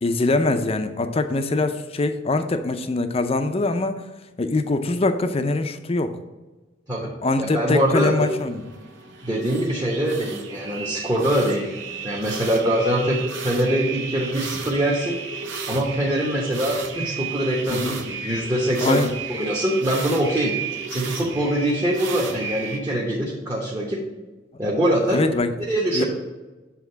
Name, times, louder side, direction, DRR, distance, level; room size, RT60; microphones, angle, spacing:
voice 1, 0.0-4.0 4.4-6.2 7.2-8.6 17.7-18.0 18.8-19.1 25.1-25.5 25.9-26.0, left 2 dB, 30° left, 8 dB, 0.5 m, -23 dB
voice 2, 7.4-8.3 9.2-11.7 12.0-15.2 15.7-19.0 19.3-20.5 20.9-24.0 24.6-25.2 25.6-26.0, right 1 dB, 20° right, -4 dB, 1.0 m, -23 dB
sound 1, 8.0-22.8, right 5 dB, 75° right, 0.9 m, -33 dB
7.2 x 3.5 x 5.7 m, 1.2 s
head